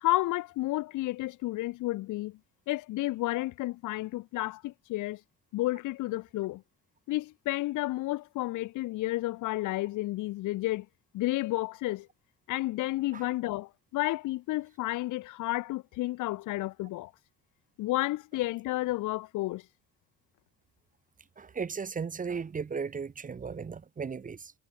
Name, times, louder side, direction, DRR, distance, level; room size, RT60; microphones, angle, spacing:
voice 1, 0.0-2.4 2.7-5.2 5.5-6.6 7.1-10.9 11.1-12.1 12.5-17.1 17.8-19.6, left 18 dB, 80° left, 0.6 m, -31 dB
voice 2, 21.4-24.5, right 5 dB, 25° right, 0.7 m, -36 dB
cardioid pair, 90°, 30 cm